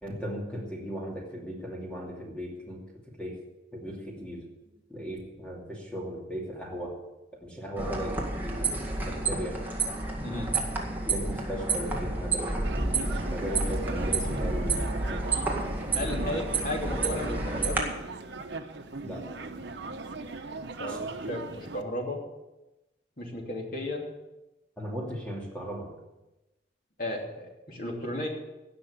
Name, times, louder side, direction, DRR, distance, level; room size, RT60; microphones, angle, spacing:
voice 1, 0.0-2.8 3.2-3.4 3.7-4.4 4.9-6.9 7.4-9.5 11.1-15.6 16.2-16.3 19.0-19.2 20.9-21.0 24.8-25.9, equal, 5° left, -2 dB, 2.5 m, -37 dB
sound 1, 7.8-17.8, right 3 dB, 10° right, 1.9 m, -30 dB
voice 2, 10.2-10.5 15.9-17.8 20.5-22.2 23.2-24.0 27.0-28.3, left 1 dB, 45° left, 0 dB, 2.9 m, -34 dB
sound 2, 12.6-21.8, right 3 dB, 70° right, 1.0 m, -38 dB
17.0 x 6.0 x 8.4 m, 1.0 s
head